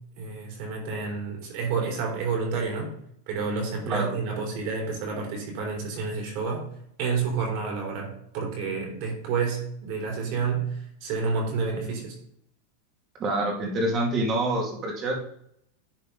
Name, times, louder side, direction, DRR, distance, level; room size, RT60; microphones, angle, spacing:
voice 1, 0.2-2.9 3.3-6.7 7.0-12.2, right 5 dB, 55° right, 0 dB, 3.4 m, -29 dB
voice 2, 13.2-15.2, right 1 dB, 30° right, 1 dB, 2.4 m, -26 dB
10.5 x 4.2 x 4.0 m, 0.71 s
supercardioid pair, 135°, 0 cm